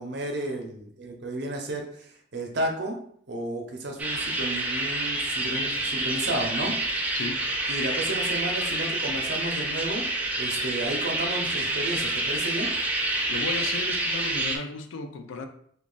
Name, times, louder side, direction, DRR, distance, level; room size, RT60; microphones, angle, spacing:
voice 1, 0.0-3.0 3.3-6.7 7.1-7.2 7.7-10.0 10.4-12.7, right 1 dB, 60° right, 2 dB, 0.6 m, -32 dB
sound 1, 4.0-14.6, right 2 dB, 10° right, 0.3 m, -28 dB
voice 2, 7.1-7.5 13.3-15.5, left 3 dB, 80° left, 6 dB, 0.5 m, -34 dB
3.0 x 2.4 x 3.8 m, 0.64 s
head